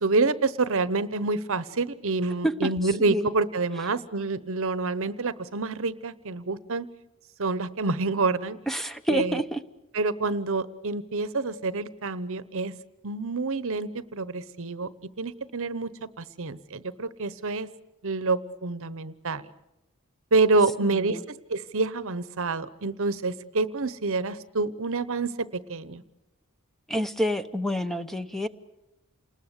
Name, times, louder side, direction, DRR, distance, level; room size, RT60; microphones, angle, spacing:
voice 1, 0.0-6.9 7.4-8.6 9.1-9.4 9.9-12.7 13.0-14.9 15.2-17.7 18.0-19.4 20.3-26.0, right 3 dB, 60° right, 16 dB, 1.0 m, -27 dB
voice 2, 8.7-9.6 20.9-21.3 26.9-28.5, equal, ahead, 10 dB, 0.9 m, -28 dB
28.5 x 20.5 x 8.2 m, 0.94 s
head